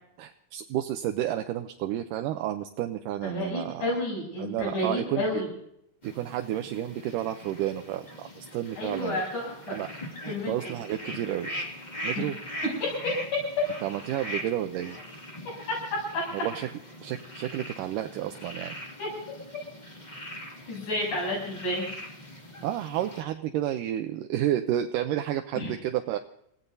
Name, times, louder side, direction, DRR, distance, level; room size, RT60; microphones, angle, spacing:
voice 1, 0.2-4.0 4.4-5.4 6.0-9.2 9.7-11.5 12.0-12.4 13.8-15.0 16.3-16.7 17.0-18.8 22.6-26.2, right 12 dB, 80° right, 6 dB, 2.2 m, -31 dB
voice 2, 3.2-5.5 8.8-9.8 10.3-10.7 12.2-12.3 12.6-13.5 15.9-16.3 19.0-19.1 20.7-21.8 25.6-25.7, left 1 dB, 65° left, -2 dB, 8.8 m, -30 dB
sound 1, 6.0-23.2, left 1 dB, 15° left, 1.7 m, -41 dB
27.5 x 17.0 x 2.7 m, 0.73 s
omnidirectional pair, 4.0 m